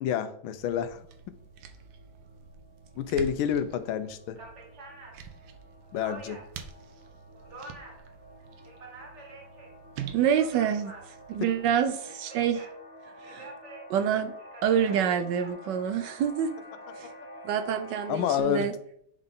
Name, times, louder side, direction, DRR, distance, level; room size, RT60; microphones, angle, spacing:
voice 1, 0.0-1.0 3.0-4.4 5.9-6.4 18.1-18.7, left 8 dB, 90° left, 12 dB, 1.4 m, -28 dB
sound 1, 0.6-11.8, right 8 dB, 90° right, 1.5 m, -47 dB
sound 2, 0.7-18.4, equal, 10° right, 0.8 m, -50 dB
sound 3, 3.9-4.0 4.3-6.6 7.0-8.1 8.5-9.7 10.1-11.4 12.1-12.8 13.2-15.5, right 2 dB, 40° right, 1.3 m, -47 dB
voice 2, 10.1-11.0 11.3-12.7 13.2-13.5 13.9-14.3 14.6-16.5 17.0-17.1 17.4-18.7, right 8 dB, 75° right, 7 dB, 1.1 m, -27 dB
9.9 x 3.8 x 3.7 m, 0.69 s
omnidirectional pair, 2.1 m